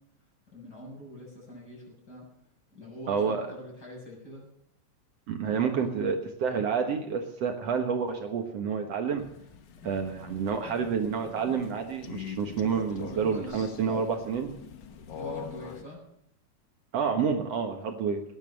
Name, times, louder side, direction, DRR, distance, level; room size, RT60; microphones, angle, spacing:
voice 1, 0.5-2.3 2.7-4.4 5.8-6.1 12.9-13.7 15.1-16.0, equal, 30° left, -2 dB, 8.1 m, -44 dB
voice 2, 3.1-3.5 5.3-9.2 9.8-14.5 16.9-18.2, right 6 dB, 60° right, 4 dB, 2.4 m, -29 dB
Crow, 9.2-15.8, left 7 dB, 60° left, 1.2 m, -43 dB
19.0 x 11.0 x 6.6 m, 0.76 s
omnidirectional pair, 3.3 m